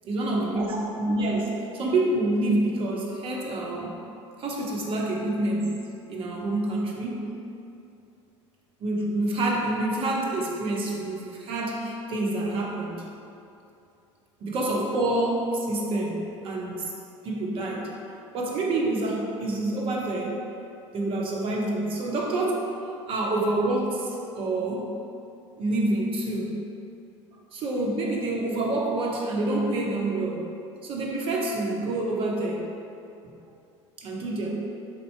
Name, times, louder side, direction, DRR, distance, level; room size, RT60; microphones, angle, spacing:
voice 1, 0.0-4.0 4.4-5.8 6.1-7.3 8.8-12.9 14.4-16.9 17.2-17.9 18.3-20.4 20.9-22.7 23.1-24.9 25.6-26.5 27.5-30.5 30.8-32.7 34.0-34.5, right 2 dB, 35° right, -2 dB, 0.8 m, -27 dB
4.4 x 2.8 x 4.3 m, 2.6 s
figure-of-eight pair, 70°, 16 cm